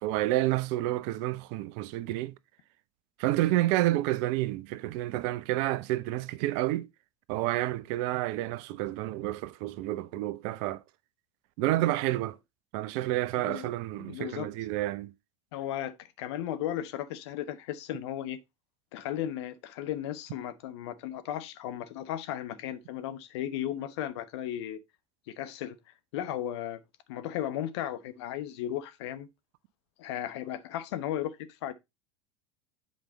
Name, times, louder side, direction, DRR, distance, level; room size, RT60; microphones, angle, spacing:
voice 1, 0.0-2.3 3.2-6.9 7.3-10.8 11.6-12.4 12.7-15.1, right 16 dB, 50° right, 0.6 m, -29 dB
voice 2, 13.4-13.7 14.0-14.5 15.5-18.4 18.9-24.8 25.3-25.8 26.1-26.8 27.1-29.3 30.0-31.4 31.6-31.7, left 11 dB, 60° left, 1.0 m, -35 dB
7.9 x 5.2 x 4.0 m
figure-of-eight pair, 75°, 16 cm